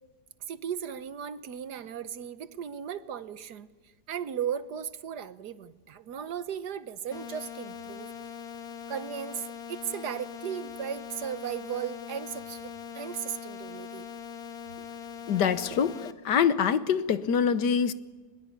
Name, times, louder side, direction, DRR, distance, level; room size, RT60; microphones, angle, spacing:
voice 1, 0.5-3.7 4.1-8.1 8.9-14.1 15.3-15.4, right 8 dB, 70° right, 13 dB, 1.6 m, -36 dB
sound 1, 7.1-16.1, left 7 dB, 60° left, 2.2 m, -42 dB
voice 2, 15.3-16.0 16.2-17.9, left 7 dB, 80° left, 13 dB, 1.6 m, -24 dB
22.5 x 21.5 x 9.9 m, 1.3 s
omnidirectional pair, 1.8 m